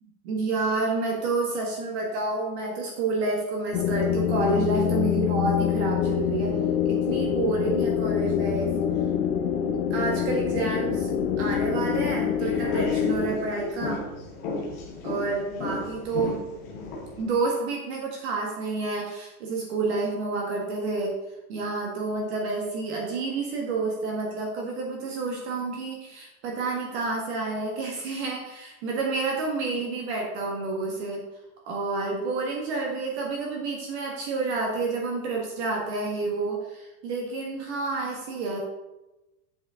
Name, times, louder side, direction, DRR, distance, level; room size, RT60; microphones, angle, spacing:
voice 1, 0.2-6.5 6.9-8.7 9.9-14.0 15.0-16.4 17.2-21.2 21.5-31.3 31.7-38.6, right 3 dB, 50° right, 0 dB, 1.7 m, -29 dB
sound 1, 3.7-13.1, left 9 dB, 30° left, 0.7 m, -25 dB
sound 2, 12.0-17.2, left 3 dB, 15° left, 0.3 m, -34 dB
8.3 x 7.3 x 3.7 m, 0.98 s
supercardioid pair, 180°, 43 cm